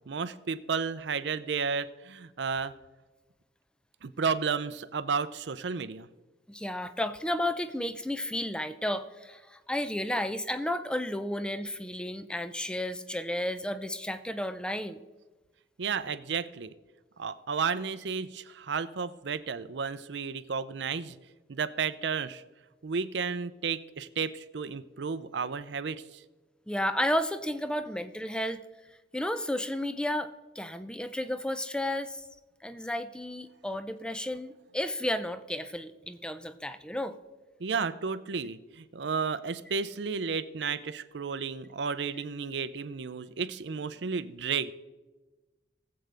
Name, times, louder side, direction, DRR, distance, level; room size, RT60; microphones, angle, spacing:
voice 1, 0.1-2.7 4.0-6.1 15.8-16.7 17.2-21.2 21.5-22.4 22.8-26.2 37.6-44.7, right 5 dB, 70° right, 14 dB, 0.5 m, -32 dB
voice 2, 6.5-15.0 26.7-28.6 29.1-32.3 32.6-37.2, left 1 dB, 5° left, 11 dB, 0.5 m, -32 dB
19.5 x 7.8 x 3.4 m, 1.2 s
head